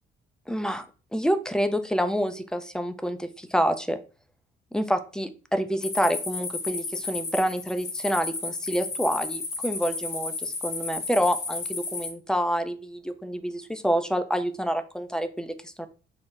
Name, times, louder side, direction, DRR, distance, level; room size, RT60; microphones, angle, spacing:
voice 1, 0.5-0.9 1.1-4.0 4.7-15.9, equal, 5° left, 9 dB, 0.3 m, -27 dB
sound 1, 5.8-12.1, left 4 dB, 55° left, 1.0 m, -33 dB
3.2 x 2.0 x 3.4 m, 0.36 s
cardioid pair, 90°, 20 cm